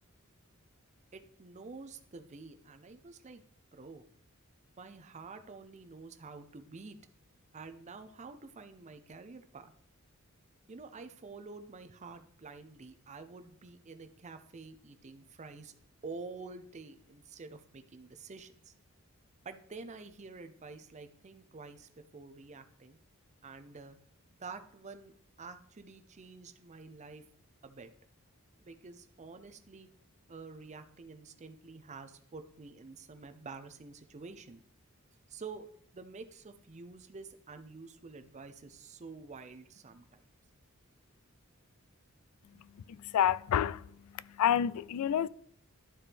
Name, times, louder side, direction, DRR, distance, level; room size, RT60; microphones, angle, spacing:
voice 1, 1.1-3.4 3.7-4.0 4.8-7.0 7.5-9.7 10.7-15.7 16.0-18.7 19.4-23.0 23.4-24.0 24.4-25.1 25.4-27.2 27.6-27.9 28.6-29.9 30.3-34.6 35.3-35.7 35.9-40.3, right 4 dB, 35° right, 0.6 m, -48 dB
voice 2, 43.0-43.8 44.4-45.3, left 9 dB, 85° left, 0.3 m, -28 dB
11.5 x 4.4 x 3.4 m
head